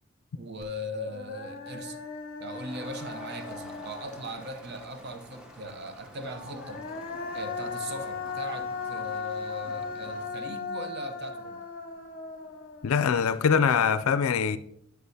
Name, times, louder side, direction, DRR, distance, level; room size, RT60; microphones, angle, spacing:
voice 1, 0.3-2.0 2.4-6.9 7.3-11.6, equal, 50° right, 0.7 m, -39 dB
Human voice, 0.6-0.7 1.1-4.7 6.4-13.7, left 4 dB, 40° left, 0.9 m, -38 dB
Crowd, 2.5-10.4, equal, 5° right, 0.8 m, -48 dB
voice 2, 12.8-14.6, left 6 dB, 70° left, 0.4 m, -23 dB
9.5 x 6.7 x 2.7 m
head